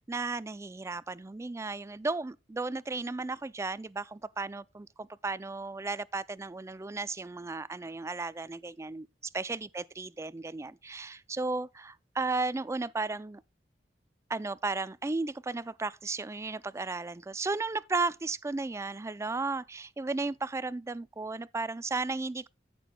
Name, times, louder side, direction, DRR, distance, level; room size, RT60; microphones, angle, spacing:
voice 1, 0.1-9.1 9.3-13.4 14.3-22.5, right 3 dB, 15° right, 0.3 m, -34 dB
15.0 x 6.1 x 2.2 m
head